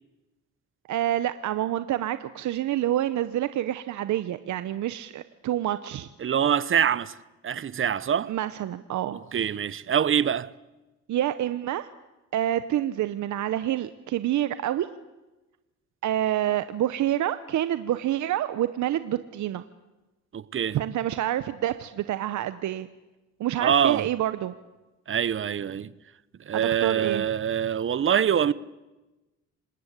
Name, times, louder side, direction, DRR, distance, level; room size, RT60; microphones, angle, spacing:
voice 1, 0.9-6.1 8.3-9.2 11.1-11.9 12.3-14.9 16.0-19.6 20.7-22.9 23.4-24.5 26.5-27.3, right 12 dB, 70° right, 1.0 m, -27 dB
voice 2, 6.2-7.2 7.4-8.3 9.1-10.5 20.3-20.8 23.6-24.1 25.1-25.9 26.4-28.5, right 8 dB, 45° right, 0.9 m, -24 dB
26.5 x 19.5 x 8.3 m
cardioid pair, 90°, 30 cm